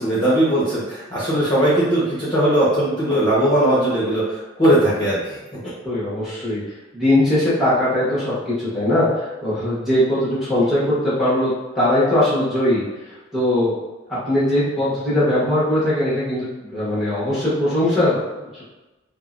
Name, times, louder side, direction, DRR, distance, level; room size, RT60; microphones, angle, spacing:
voice 1, 0.0-4.2 4.6-5.2, right 1 dB, 25° left, -10 dB, 0.8 m, -18 dB
voice 2, 5.8-6.6 6.9-13.7 14.1-18.6, left 1 dB, ahead, -10 dB, 1.0 m, -20 dB
3.5 x 2.0 x 2.4 m, 1.1 s
head